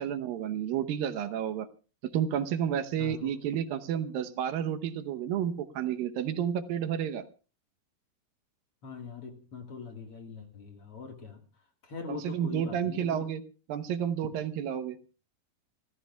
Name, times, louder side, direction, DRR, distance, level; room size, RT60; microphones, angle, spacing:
voice 1, 0.0-1.7 2.1-7.2 12.1-13.4 13.7-15.0, right 9 dB, 80° right, 9 dB, 2.7 m, -31 dB
voice 2, 3.0-3.3 8.8-11.4 11.8-13.3, left 5 dB, 45° left, 4 dB, 2.4 m, -42 dB
28.5 x 14.0 x 2.3 m, 0.35 s
omnidirectional pair, 4.1 m